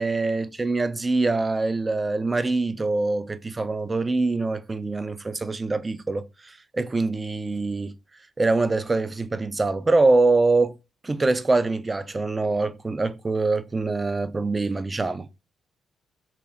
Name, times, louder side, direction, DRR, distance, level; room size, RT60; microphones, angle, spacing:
voice 1, 0.0-7.9 8.4-10.7 11.0-15.3, right 3 dB, 25° right, 0.4 m, -24 dB
2.9 x 2.9 x 3.9 m
cardioid pair, 90°, 0 cm